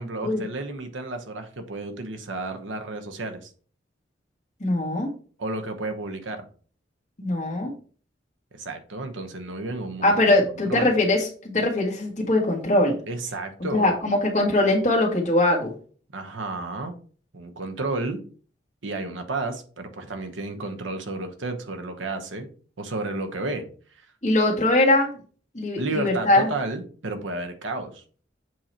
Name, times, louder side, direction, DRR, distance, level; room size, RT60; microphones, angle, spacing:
voice 1, 0.0-3.5 5.4-6.5 8.5-10.2 10.7-11.0 13.1-14.0 16.1-17.0 17.3-18.2 18.8-22.5 22.8-23.7 23.9-24.1 25.8-28.0, right 2 dB, 85° right, 6 dB, 1.0 m, -32 dB
voice 2, 4.6-5.1 7.2-7.7 10.0-12.9 13.7-15.7 24.2-25.2 25.5-26.5, left 1 dB, 40° left, -2 dB, 1.6 m, -21 dB
7.6 x 2.9 x 4.3 m, 0.42 s
head